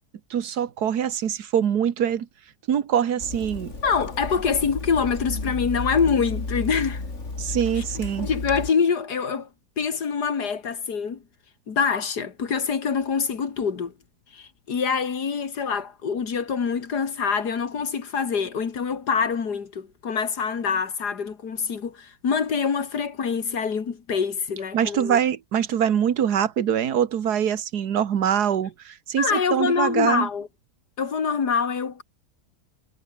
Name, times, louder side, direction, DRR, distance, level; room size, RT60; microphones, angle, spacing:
voice 1, 0.3-2.3 2.7-3.7 7.4-8.3 24.7-30.3, right 9 dB, 70° right, 1.8 m, -24 dB
Water tap faucet / Sink (filling or washing), 3.2-8.7, left 3 dB, 45° left, 3.8 m, -33 dB
voice 2, 3.8-7.0 7.8-7.9 8.2-9.5 9.8-11.2 11.7-13.9 14.3-25.2 29.2-30.5 31.0-32.0, left 6 dB, 70° left, 2.6 m, -25 dB
omnidirectional pair, 1.8 m